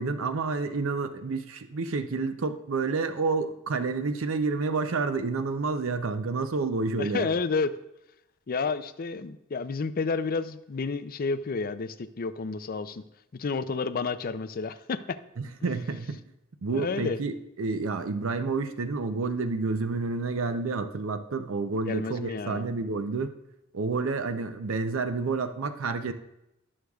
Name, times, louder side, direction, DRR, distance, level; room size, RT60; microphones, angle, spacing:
voice 1, 0.0-7.3 15.4-16.2 16.6-23.3 23.7-26.1, right 4 dB, 70° right, 9 dB, 0.6 m, -29 dB
voice 2, 7.0-7.7 8.5-13.0 13.3-15.2 16.7-17.2 21.9-22.6, left 4 dB, 45° left, 11 dB, 0.5 m, -30 dB
18.0 x 6.4 x 2.3 m, 0.87 s
head